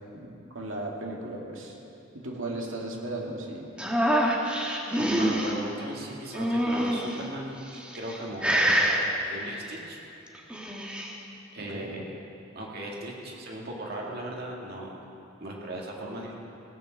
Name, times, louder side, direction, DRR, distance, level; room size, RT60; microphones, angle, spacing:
voice 1, 0.1-1.8 2.1-3.7 11.6-11.9, right 1 dB, 75° right, -1 dB, 2.1 m, -36 dB
sound 1, 3.8-5.5 6.3-7.2 7.8-8.2 8.4-9.0 10.3-11.1, equal, 5° right, 1.2 m, -25 dB
voice 2, 5.0-10.0 11.5-12.1 12.5-15.0 15.4-16.3, right 1 dB, 50° right, -2 dB, 2.1 m, -37 dB
17.5 x 9.1 x 6.5 m, 2.8 s
head